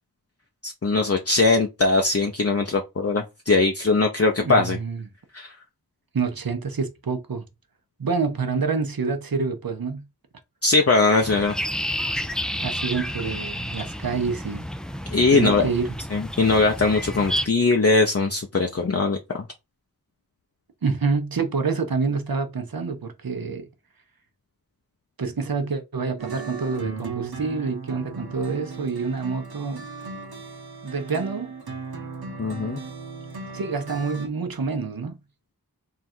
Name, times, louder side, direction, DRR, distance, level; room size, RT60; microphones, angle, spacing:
voice 1, 0.6-4.8 5.3-5.5 10.6-11.6 15.1-15.7 16.1-19.4 32.4-32.8, left 3 dB, 40° left, 0.6 m, -21 dB
voice 2, 4.4-5.0 6.1-7.4 8.0-10.0 12.6-14.7 15.3-16.0 20.8-23.7 25.2-29.8 30.8-31.5 33.5-35.2, right 4 dB, 70° right, 0.8 m, -27 dB
sound 1, 11.2-17.5, equal, ahead, 0.3 m, -30 dB
sound 2, 26.2-34.3, right 4 dB, 85° right, 1.0 m, -37 dB
3.7 x 2.5 x 4.3 m
wide cardioid pair, 45°, 37 cm